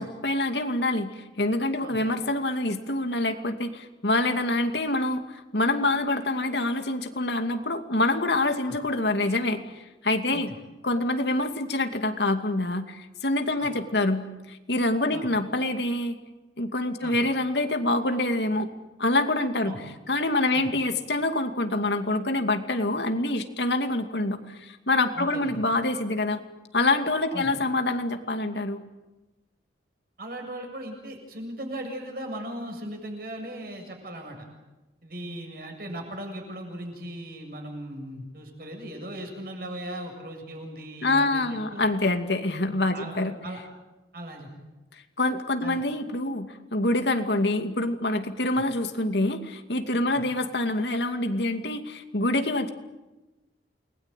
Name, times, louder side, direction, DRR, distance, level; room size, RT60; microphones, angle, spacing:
voice 1, 0.0-10.5 10.8-16.2 16.6-18.7 19.0-19.8 20.1-26.4 26.7-28.8 41.0-43.3 45.2-52.7, left 2 dB, 70° left, 6 dB, 2.4 m, -26 dB
voice 2, 25.1-25.6 27.3-27.5 30.2-34.5 35.0-41.8 42.9-43.6 44.1-44.5 45.6-45.8 48.5-48.6 50.1-50.2, right 1 dB, 55° right, 3 dB, 7.4 m, -38 dB
29.5 x 21.0 x 9.2 m, 1.1 s
head